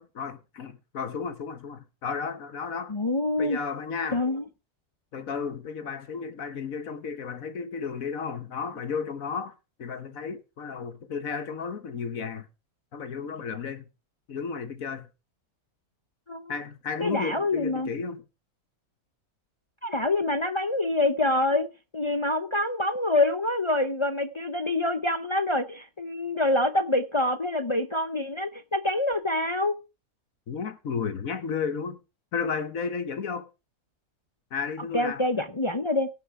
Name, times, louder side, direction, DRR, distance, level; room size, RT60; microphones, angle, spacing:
voice 1, 0.0-2.9 3.4-4.2 5.1-9.5 9.8-12.5 12.9-13.8 14.3-15.1 16.5-18.2 30.5-32.0 32.3-33.5 34.5-35.2, left 5 dB, 65° left, 1.5 m, -33 dB
voice 2, 2.9-3.6 4.1-4.4 16.3-16.5 17.0-17.9 19.8-21.7 21.9-29.8 34.9-36.1, left 2 dB, 40° left, 0.4 m, -26 dB
17.5 x 6.1 x 4.7 m
omnidirectional pair, 1.6 m